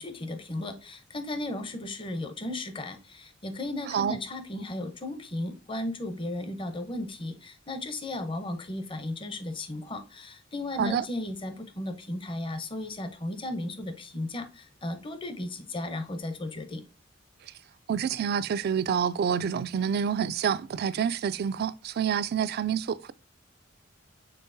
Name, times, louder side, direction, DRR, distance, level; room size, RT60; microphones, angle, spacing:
voice 1, 0.0-16.8, left 1 dB, 25° left, 0.7 m, -35 dB
voice 2, 17.9-23.1, right 7 dB, 55° right, 0.3 m, -28 dB
5.5 x 3.7 x 2.6 m
head